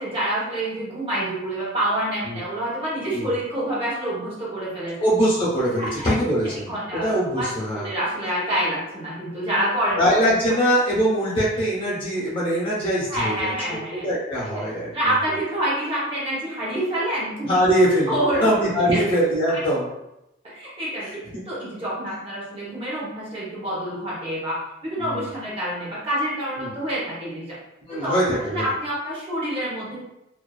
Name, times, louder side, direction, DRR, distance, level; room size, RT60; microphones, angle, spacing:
voice 1, 0.0-5.0 5.8-6.1 6.7-7.5 7.7-10.0 13.1-14.1 14.6-14.7 14.9-17.6 18.1-18.5 18.9-19.0 19.5-19.6 20.4-21.1 21.5-27.5 28.0-28.2 28.5-30.0, right 1 dB, 30° right, -8 dB, 0.9 m, -27 dB
voice 2, 5.0-7.9 10.0-14.9 17.4-19.9 21.0-21.4 25.0-25.3 26.6-26.7 27.9-28.7, equal, 30° left, -8 dB, 0.8 m, -22 dB
2.4 x 2.3 x 2.3 m, 0.88 s
head